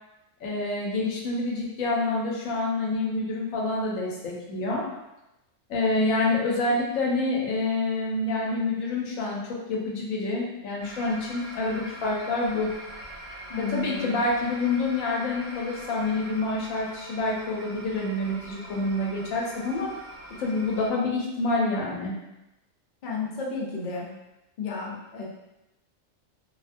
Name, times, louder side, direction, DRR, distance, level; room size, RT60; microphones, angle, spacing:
voice 1, 0.4-4.8 5.7-9.4 9.7-12.7 13.7-19.9 20.4-22.1, left 2 dB, 90° left, -3 dB, 1.0 m, -27 dB
sound 1, 10.8-20.9, right 1 dB, 70° right, 1.0 m, -43 dB
voice 2, 13.5-14.2 23.0-24.1 24.6-25.2, left 4 dB, 60° left, -3 dB, 0.5 m, -32 dB
2.4 x 2.1 x 2.5 m, 0.95 s
omnidirectional pair, 1.3 m